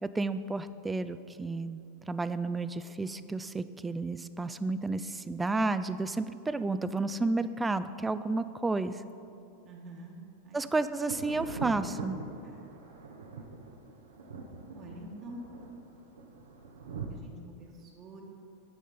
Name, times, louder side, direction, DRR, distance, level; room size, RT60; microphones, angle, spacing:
voice 1, 0.0-1.8 2.1-9.0 10.5-12.2, right 3 dB, 10° right, 12 dB, 0.3 m, -31 dB
voice 2, 9.6-10.6 12.4-12.7 14.7-15.5 16.9-18.2, right 1 dB, 35° right, -1 dB, 1.2 m, -47 dB
Thunder, 10.9-17.1, right 3 dB, 85° right, 0.8 m, -42 dB
10.0 x 4.1 x 5.1 m, 2.6 s
hypercardioid pair, 100°, 0 cm